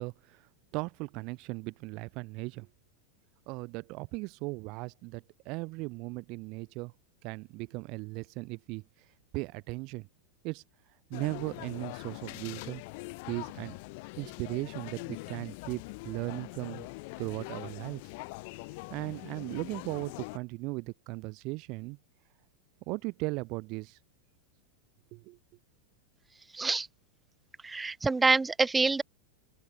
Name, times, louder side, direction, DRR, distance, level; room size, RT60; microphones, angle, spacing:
voice 1, 0.0-2.7 3.5-6.9 7.2-8.8 9.3-10.1 10.4-10.6 11.1-12.8 13.3-13.8 14.2-16.9 17.2-18.0 18.9-22.0 22.9-24.0 25.1-25.4, right 25 dB, 40° right, 2.2 m, -37 dB
sound 1, 11.1-20.4, left 28 dB, 45° left, 5.1 m, -43 dB
voice 2, 26.5-26.9 27.6-29.0, right 3 dB, 10° right, 0.3 m, -26 dB
open air
figure-of-eight pair, 90°, 0 cm